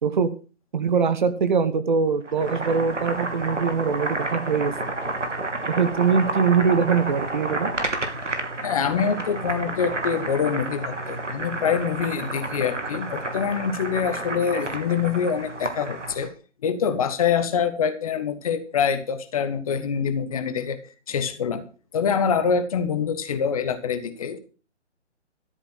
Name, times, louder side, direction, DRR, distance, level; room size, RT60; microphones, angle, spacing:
voice 1, 0.7-4.7 5.7-7.7, right 6 dB, 40° right, 11 dB, 1.3 m, -22 dB
Boiling, 2.2-16.3, right 2 dB, 80° right, 3.0 m, -30 dB
voice 2, 8.6-16.3 16.6-20.8 21.1-21.6 21.9-24.4, left 7 dB, 30° left, 10 dB, 1.4 m, -25 dB
13.0 x 8.2 x 6.4 m, 0.36 s
figure-of-eight pair, 150°, 36 cm